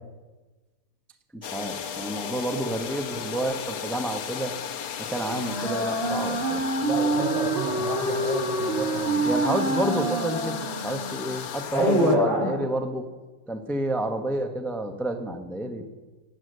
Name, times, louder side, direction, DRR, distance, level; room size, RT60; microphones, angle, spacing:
voice 1, 1.3-4.5 5.0-6.7 9.2-10.5 10.8-13.1 13.5-15.8, right 1 dB, ahead, 5 dB, 0.4 m, -29 dB
sound 1, 1.4-12.2, left 8 dB, 85° left, 1.7 m, -35 dB
Wind instrument woodwind instrument, 5.3-11.2, right 2 dB, 30° right, 2.2 m, -27 dB
voice 2, 6.8-9.3 11.7-12.5, equal, 70° right, -3 dB, 5.4 m, -26 dB
17.5 x 8.0 x 6.6 m, 1.3 s
omnidirectional pair, 2.1 m